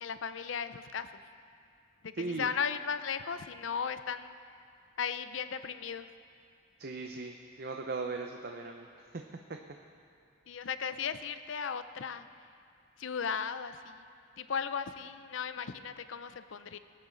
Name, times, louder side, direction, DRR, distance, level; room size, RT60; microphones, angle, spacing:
voice 1, 0.0-1.1 2.0-4.3 5.0-6.1 10.5-12.3 13.0-14.0 14.4-16.8, left 6 dB, 70° left, 11 dB, 0.5 m, -36 dB
voice 2, 2.1-2.5 6.8-9.6, right 3 dB, 50° right, 3 dB, 0.6 m, -39 dB
20.0 x 9.4 x 3.9 m, 2.5 s
head